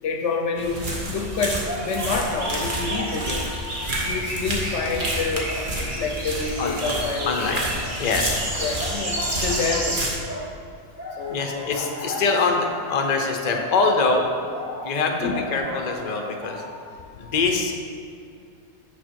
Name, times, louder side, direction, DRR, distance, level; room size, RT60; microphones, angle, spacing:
voice 1, 0.0-3.6 4.1-5.5 5.9-7.3 8.6-10.3 11.2-12.0 15.1-15.4, left 4 dB, 70° left, 4 dB, 1.0 m, -28 dB
sound 1, 0.6-10.1, right 1 dB, 40° right, 1.3 m, -28 dB
sound 2, 1.6-4.5 4.8-6.2 6.5-13.9 14.5-17.1, equal, 10° right, 1.4 m, -36 dB
voice 2, 7.3-7.6 8.0-8.5 11.3-14.3 14.8-16.6 17.2-17.8, left 4 dB, 45° left, 3 dB, 0.7 m, -24 dB
6.4 x 6.1 x 4.6 m, 2.4 s
omnidirectional pair, 1.3 m